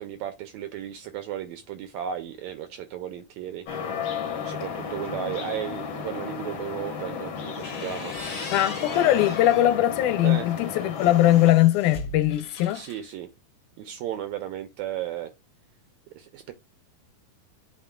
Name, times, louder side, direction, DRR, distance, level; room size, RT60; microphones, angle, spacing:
voice 1, 0.0-3.7 4.4-8.2 10.2-10.5 12.7-13.3 13.8-15.3 16.2-16.5, right 10 dB, 80° right, 1.6 m, -34 dB
sound 1, 3.7-11.5, left 6 dB, 55° left, 1.5 m, -33 dB
sound 2, 7.4-9.7 10.2-13.0, left 2 dB, 40° left, 1.3 m, -40 dB
voice 2, 8.5-12.8, left 14 dB, 80° left, 2.0 m, -21 dB
11.0 x 4.4 x 2.2 m
omnidirectional pair, 3.8 m